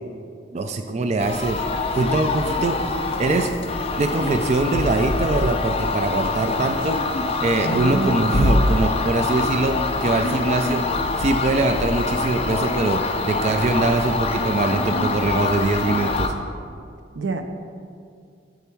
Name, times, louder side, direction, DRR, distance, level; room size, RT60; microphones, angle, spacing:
voice 1, 0.5-1.6 1.9-2.8 3.2-3.5 4.0-7.0 7.4-16.3, right 2 dB, 40° right, 6 dB, 0.3 m, -23 dB
sound 1, 1.2-16.3, left 3 dB, 35° left, 0.5 m, -24 dB
voice 2, 7.6-8.6 17.1-17.4, right 3 dB, 80° right, 7 dB, 0.6 m, -27 dB
7.3 x 6.8 x 4.5 m, 2.3 s
head